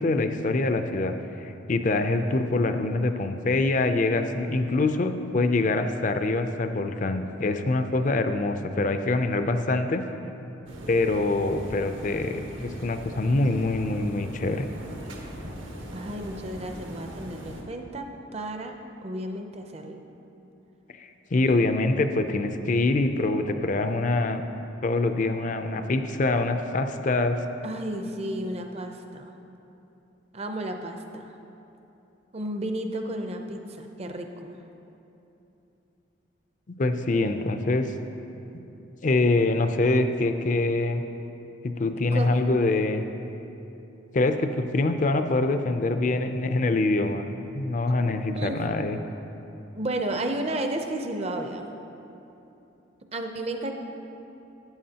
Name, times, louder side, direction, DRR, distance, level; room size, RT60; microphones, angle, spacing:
voice 1, 0.0-10.0 10.9-14.7 21.0-24.4 24.8-27.4 36.7-37.9 39.0-41.0 41.6-43.0 44.1-47.3 47.5-49.0, left 2 dB, 40° left, 8 dB, 0.4 m, -25 dB
sound 1, 10.7-17.6, right 1 dB, 80° right, 1.3 m, -40 dB
voice 2, 15.9-18.8 19.0-20.0 21.5-21.6 27.6-29.3 30.3-31.3 32.3-34.6 42.1-42.4 48.3-48.6 49.7-51.7 53.1-53.7, right 1 dB, 30° right, 5 dB, 0.6 m, -33 dB
13.0 x 9.3 x 2.8 m, 3.0 s
head